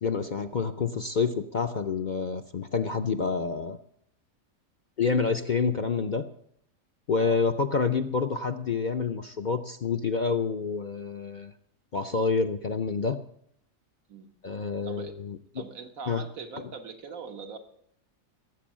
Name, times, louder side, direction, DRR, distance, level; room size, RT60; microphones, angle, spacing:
voice 1, 0.0-3.8 5.0-6.2 7.1-11.5 11.9-13.2 14.4-15.6 16.1-16.2, left 5 dB, 50° left, 8 dB, 0.5 m, -28 dB
voice 2, 15.5-17.6, right 5 dB, 80° right, 6 dB, 1.8 m, -41 dB
17.0 x 7.8 x 7.4 m, 0.70 s
omnidirectional pair, 1.4 m